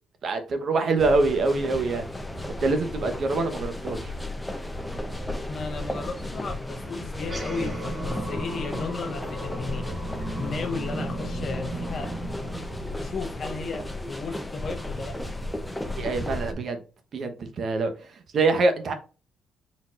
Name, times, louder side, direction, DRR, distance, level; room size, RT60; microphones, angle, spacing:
voice 1, 0.2-2.1 2.6-4.1 15.9-16.8 17.1-17.9 18.3-18.9, right 3 dB, 55° right, 1.0 m, -24 dB
sound 1, 1.0-16.5, left 1 dB, 10° left, 0.7 m, -34 dB
voice 2, 5.5-9.9 10.3-12.2 13.0-15.2, left 4 dB, 50° left, 0.6 m, -34 dB
sound 2, 7.1-13.9, right 1 dB, 20° right, 1.2 m, -36 dB
4.2 x 4.0 x 2.5 m
cardioid pair, 90°, 0 cm